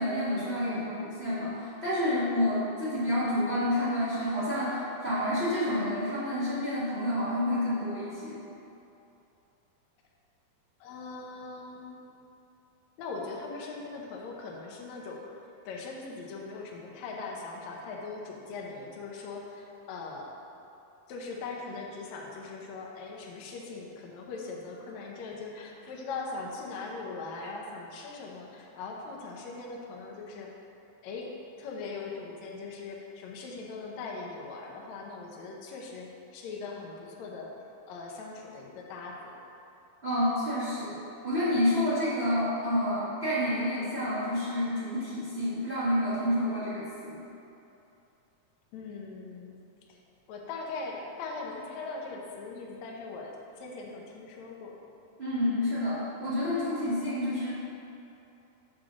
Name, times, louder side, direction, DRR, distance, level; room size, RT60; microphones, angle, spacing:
voice 1, 0.0-8.4 40.0-41.0 41.2-47.2 55.2-57.5, left 1 dB, 45° right, -14 dB, 0.7 m, -29 dB
voice 2, 10.8-12.2 13.0-15.2 15.6-20.3 21.1-30.5 31.0-31.3 31.6-37.5 37.9-39.3 48.7-49.5 49.9-50.0 50.3-54.8, left 3 dB, 70° left, -2 dB, 1.7 m, -40 dB
7.4 x 6.4 x 3.7 m, 2.8 s
omnidirectional pair, 4.1 m